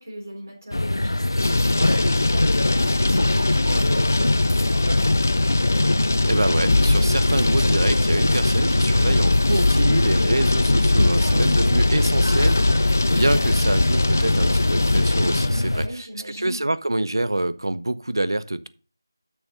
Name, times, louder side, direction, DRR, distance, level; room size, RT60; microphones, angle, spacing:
voice 1, 0.0-5.6 8.4-8.8 11.2-11.6 15.5-16.6, equal, 40° right, 3.8 m, -37 dB
sound 1, 0.7-15.9, left 1 dB, 85° left, 0.8 m, -24 dB
sound 2, 1.4-15.5, left 2 dB, 40° left, 0.4 m, -21 dB
voice 2, 6.3-16.1 16.4-18.7, right 1 dB, 85° right, 0.8 m, -26 dB
6.4 x 6.3 x 6.3 m
figure-of-eight pair, 180°, 2 cm